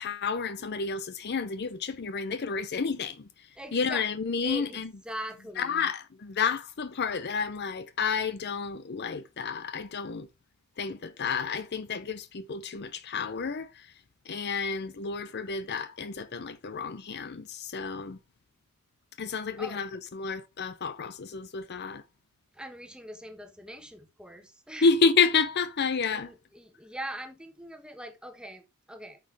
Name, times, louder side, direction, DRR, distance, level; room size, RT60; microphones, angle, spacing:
voice 1, 0.0-4.9 5.6-10.3 10.8-14.0 14.3-18.2 19.2-22.0 24.8-26.3, left 5 dB, 50° left, 0.6 m, -30 dB
voice 2, 3.5-4.1 4.4-4.8 5.0-5.9 19.6-19.9 22.5-24.9 26.1-29.2, right 1 dB, 5° right, 1.2 m, -42 dB
9.1 x 6.5 x 3.4 m
head